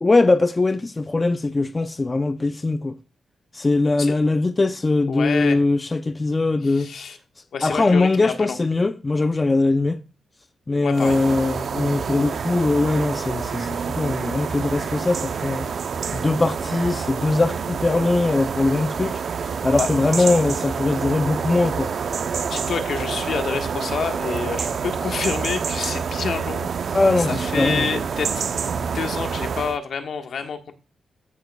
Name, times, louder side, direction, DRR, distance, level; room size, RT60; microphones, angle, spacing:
voice 1, 0.0-3.0 3.5-6.9 7.6-10.0 10.7-15.7 16.1-19.2 19.6-21.9 26.9-27.9, left 3 dB, 30° left, 0.6 m, -21 dB
voice 2, 5.1-5.6 6.6-7.2 7.5-8.6 10.8-11.2 19.8-19.9 20.2-20.3 22.4-28.4 28.8-30.7, left 6 dB, 70° left, 1.4 m, -28 dB
sound 1, 10.9-29.8, right 6 dB, 65° right, 0.6 m, -27 dB
14.5 x 6.6 x 2.3 m
cardioid pair, 85°, 0 cm